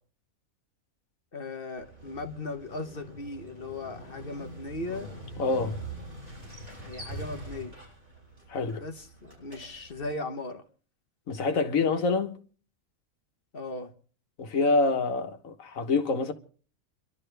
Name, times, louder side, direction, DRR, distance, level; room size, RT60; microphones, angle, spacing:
voice 1, 1.3-5.1 6.8-7.8 8.8-10.6 13.5-13.9, left 2 dB, 45° left, 1.3 m, -37 dB
Motorcycle, 1.8-10.1, right 1 dB, 35° right, 5.7 m, -43 dB
voice 2, 5.4-5.8 8.5-8.8 11.3-12.4 14.4-16.3, left 3 dB, 80° left, 1.6 m, -26 dB
29.5 x 12.0 x 3.4 m
omnidirectional pair, 1.4 m